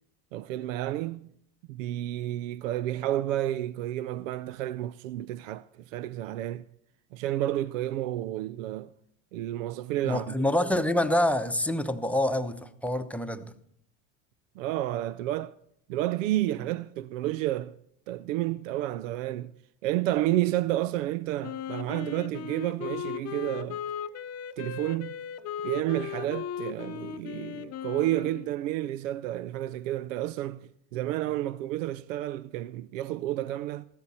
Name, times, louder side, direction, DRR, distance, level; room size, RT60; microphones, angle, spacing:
voice 1, 0.3-1.3 1.7-6.6 7.1-8.9 9.3-10.4 14.6-15.5 15.9-17.8 18.1-19.5 19.8-23.8 24.6-25.2 25.6-33.8, right 14 dB, 85° right, 0.5 m, -31 dB
voice 2, 10.0-13.5, left 1 dB, 5° left, 0.9 m, -26 dB
Wind instrument woodwind instrument, 21.4-28.5, left 9 dB, 40° left, 0.8 m, -37 dB
15.0 x 12.5 x 4.3 m
hypercardioid pair, 90°, 38 cm